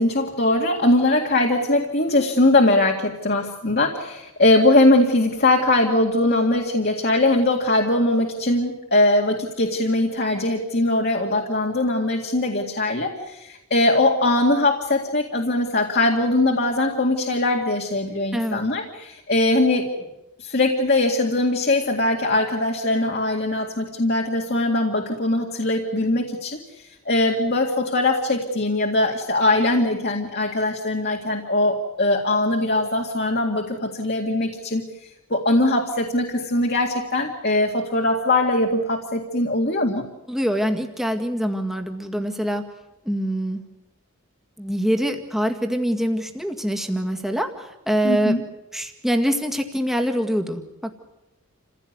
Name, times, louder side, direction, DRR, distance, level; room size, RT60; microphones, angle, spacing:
voice 1, 0.0-19.9 20.4-34.8 35.3-40.0 48.0-48.4, left 2 dB, 45° left, 1 dB, 2.1 m, -21 dB
voice 2, 40.3-42.7 43.0-43.6 44.6-48.4 48.7-50.9, equal, ahead, 4 dB, 1.9 m, -24 dB
28.5 x 16.0 x 9.4 m, 0.97 s
head